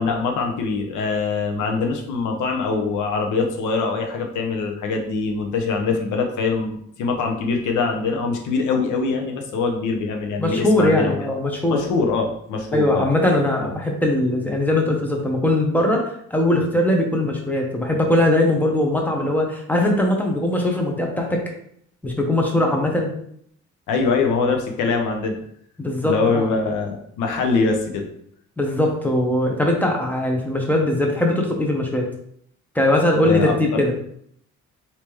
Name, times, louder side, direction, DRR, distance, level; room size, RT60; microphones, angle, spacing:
voice 1, 0.0-11.2 11.7-13.1 23.9-25.3 26.0-28.0 33.2-33.8, left 4 dB, 80° left, 3 dB, 0.8 m, -23 dB
voice 2, 10.4-11.8 12.7-16.0 16.3-21.4 22.0-23.1 25.8-26.5 28.6-32.1 32.7-33.9, left 1 dB, 5° left, 0 dB, 0.8 m, -20 dB
3.3 x 2.8 x 3.1 m, 0.68 s
cardioid pair, 90°, 30 cm